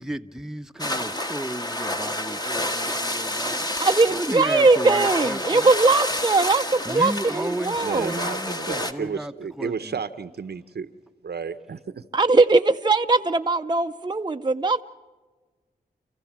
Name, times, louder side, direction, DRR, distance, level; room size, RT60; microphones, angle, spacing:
voice 1, 0.0-3.6 4.1-5.7 6.8-10.0, right 1 dB, 5° right, 0.9 m, -33 dB
sound 1, 0.8-8.9, left 1 dB, 25° left, 1.5 m, -29 dB
voice 2, 3.8-8.2 12.1-14.8, right 3 dB, 25° right, 0.6 m, -20 dB
voice 3, 7.8-11.0 11.2-12.0, right 5 dB, 75° right, 0.9 m, -32 dB
29.0 x 15.0 x 7.4 m
cardioid pair, 55°, 17 cm